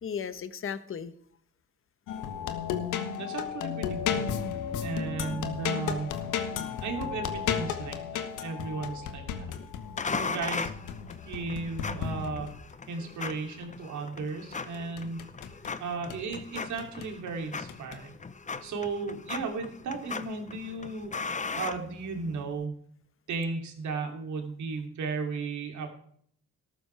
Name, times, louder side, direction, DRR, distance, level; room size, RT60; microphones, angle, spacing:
voice 1, 0.0-1.1 6.5-6.7 9.5-10.4, left 7 dB, 45° left, 13 dB, 1.1 m, -38 dB
sound 1, 2.1-12.7 14.5-15.7 16.1-17.1 17.7-18.0, left 7 dB, 85° left, 1.4 m, -34 dB
voice 2, 3.2-4.4 4.8-6.1 6.8-9.2 10.1-10.7 11.2-12.5 12.9-15.2 15.8-18.1 18.6-21.1 21.5-22.8 23.3-25.9, right 4 dB, 70° right, 3 dB, 3.0 m, -35 dB
sound 2, 10.0-22.5, left 4 dB, 25° left, 0.8 m, -38 dB
13.5 x 12.5 x 3.4 m, 0.62 s
cardioid pair, 90°, 30 cm